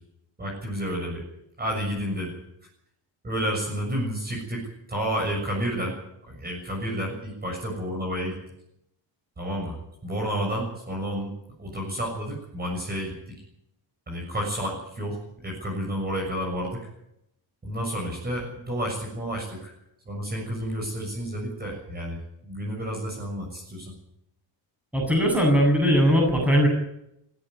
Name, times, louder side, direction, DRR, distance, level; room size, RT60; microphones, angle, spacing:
voice 1, 0.4-1.2 1.6-2.3 3.2-5.9 6.3-8.4 9.4-9.8 10.0-11.3 11.6-13.1 14.1-16.8 17.6-19.7 20.0-23.9, equal, 20° right, -1 dB, 6.8 m, -30 dB
voice 2, 24.9-26.7, equal, 5° right, 0 dB, 7.8 m, -19 dB
17.0 x 16.0 x 9.7 m, 0.80 s
cardioid pair, 160°, 46 cm